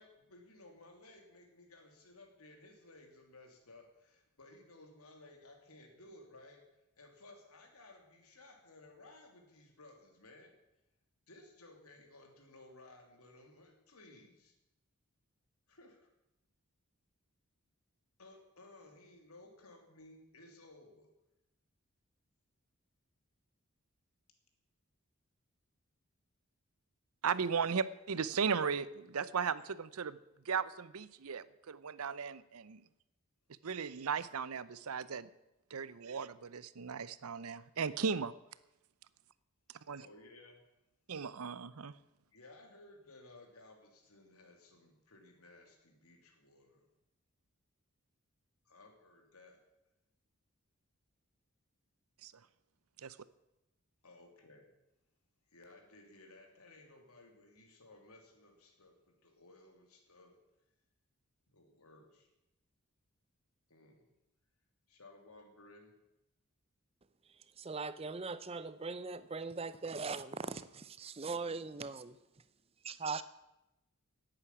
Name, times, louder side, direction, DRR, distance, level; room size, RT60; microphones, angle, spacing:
voice 1, 0.0-6.6 7.0-10.6 11.3-14.5 15.7-16.1 18.2-21.1 40.0-40.6 42.3-46.9 48.6-49.6 54.0-54.7 55.5-60.4 61.5-62.3 63.7-64.1 64.9-65.9, left 2 dB, 85° left, 3 dB, 3.0 m, -58 dB
voice 2, 27.2-30.2 30.5-32.8 33.6-35.3 35.7-38.3 39.9-40.0 41.1-41.9 52.2-52.3 53.0-53.2, right 6 dB, 80° right, 17 dB, 0.7 m, -36 dB
voice 3, 67.6-72.2 72.8-73.2, right 4 dB, 25° right, 14 dB, 0.5 m, -40 dB
11.0 x 9.0 x 9.8 m, 0.94 s
head